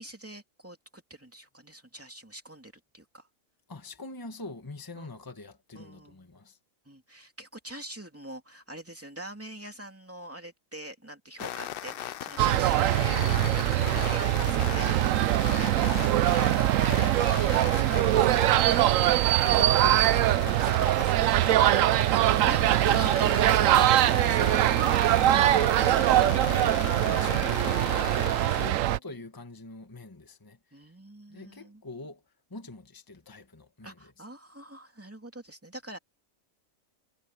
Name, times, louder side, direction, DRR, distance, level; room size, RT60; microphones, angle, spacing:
voice 1, 0.0-3.3 5.0-5.1 5.7-6.2 6.8-14.9 18.6-18.9 20.8-24.6 27.9-28.7 30.7-31.8 33.8-36.0, right 1 dB, 10° right, 2.7 m, -44 dB
voice 2, 3.7-6.6 17.4-18.8 19.1-21.0 25.2-30.9 31.3-32.2 32.5-34.1, left 2 dB, 15° left, 1.5 m, -44 dB
sound 1, 11.4-28.7, left 11 dB, 65° left, 0.5 m, -38 dB
sound 2, 12.4-29.0, right 14 dB, 75° right, 0.9 m, -23 dB
omnidirectional pair, 1.4 m